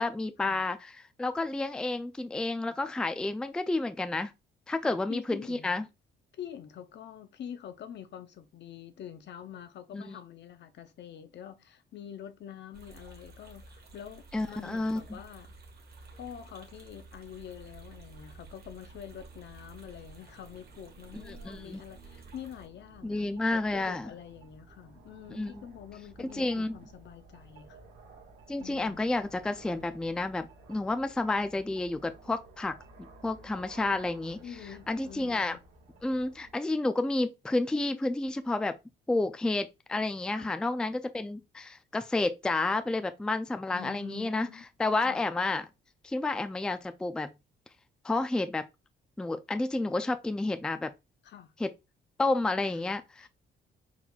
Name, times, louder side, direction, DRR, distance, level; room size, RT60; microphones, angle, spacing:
voice 1, 0.0-4.3 4.7-5.8 9.9-10.2 14.3-15.2 21.3-21.8 23.0-24.1 25.3-25.5 26.3-26.8 28.5-32.7 33.2-34.4 34.9-35.6 36.0-38.8 39.1-44.5 44.8-45.7 46.0-47.3 48.0-48.6 49.2-50.9 51.6-51.7 52.2-53.3, left 2 dB, 5° left, 0.4 m, -30 dB
voice 2, 4.8-5.8 6.3-15.5 16.2-27.8 28.6-29.0 34.4-35.6 40.3-40.5 43.7-44.6 45.0-45.2 51.2-51.5 52.6-52.8 53.2-53.3, left 9 dB, 60° left, 0.7 m, -46 dB
sound 1, 12.7-22.7, right 3 dB, 55° right, 1.2 m, -52 dB
sound 2, 17.2-36.5, right 3 dB, 85° right, 1.5 m, -55 dB
4.3 x 4.1 x 2.3 m
cardioid pair, 90°, 20 cm